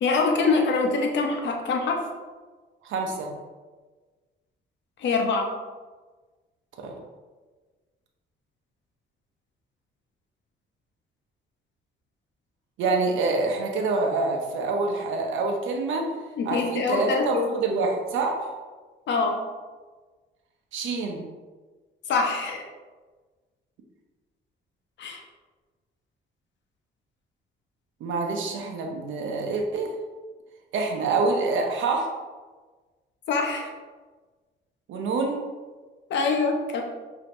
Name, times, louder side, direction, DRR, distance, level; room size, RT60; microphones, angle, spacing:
voice 1, 0.0-2.0 5.0-5.5 16.4-17.5 19.1-19.4 22.1-22.7 25.0-25.2 33.3-33.7 36.1-36.8, left 4 dB, 65° left, 2 dB, 0.8 m, -24 dB
voice 2, 2.8-3.3 6.8-7.0 12.8-16.1 16.4-18.5 20.7-21.2 28.0-29.9 30.7-32.1 34.9-35.4, right 3 dB, 80° right, 2 dB, 0.7 m, -26 dB
5.1 x 2.8 x 2.9 m, 1.3 s
cardioid pair, 90°, 20 cm